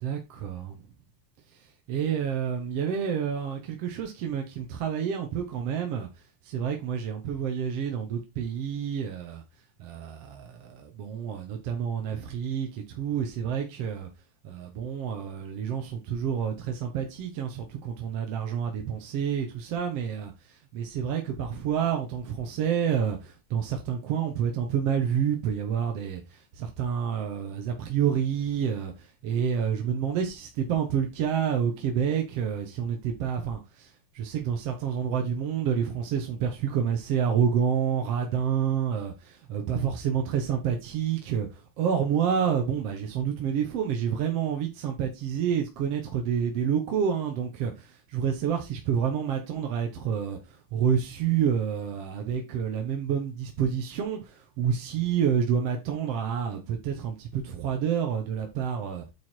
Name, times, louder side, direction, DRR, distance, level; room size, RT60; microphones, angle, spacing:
voice 1, 0.0-0.7 1.9-6.1 6.5-9.4 9.8-14.1 14.4-20.3 20.7-28.9 29.2-33.9 34.2-50.4 50.7-59.0, right 8 dB, 60° right, 2.1 m, -28 dB
9.4 x 3.9 x 4.5 m
omnidirectional pair, 3.3 m